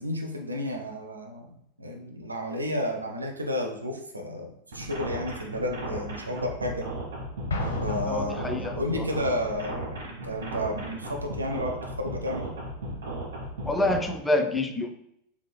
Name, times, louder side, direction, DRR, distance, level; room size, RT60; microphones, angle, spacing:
voice 1, 0.0-6.9 7.8-12.5, left 1 dB, 90° right, 2 dB, 0.5 m, -32 dB
sound 1, 4.7-14.0, right 1 dB, 65° right, 1.0 m, -35 dB
Explosion, 7.5-9.1, left 2 dB, 75° left, 0.6 m, -33 dB
voice 2, 8.1-9.1 13.6-14.9, left 2 dB, 10° left, 5 dB, 0.4 m, -27 dB
3.5 x 3.4 x 2.2 m, 0.75 s
figure-of-eight pair, 90°, 0 cm